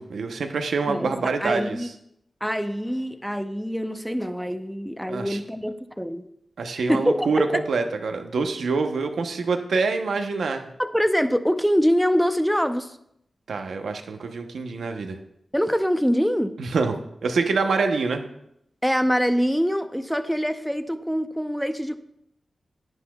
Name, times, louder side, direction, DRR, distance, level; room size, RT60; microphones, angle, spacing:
voice 1, 0.0-1.8 5.1-5.4 6.6-10.7 13.5-15.2 16.6-17.0 17.2-18.2, right 4 dB, 90° right, 6 dB, 0.9 m, -25 dB
voice 2, 0.9-1.9 2.4-6.2 6.8-7.6 10.8-13.0 15.5-16.6 18.8-22.0, equal, ahead, 9 dB, 0.7 m, -24 dB
11.0 x 9.9 x 2.3 m, 0.76 s
cardioid pair, 50°, 0 cm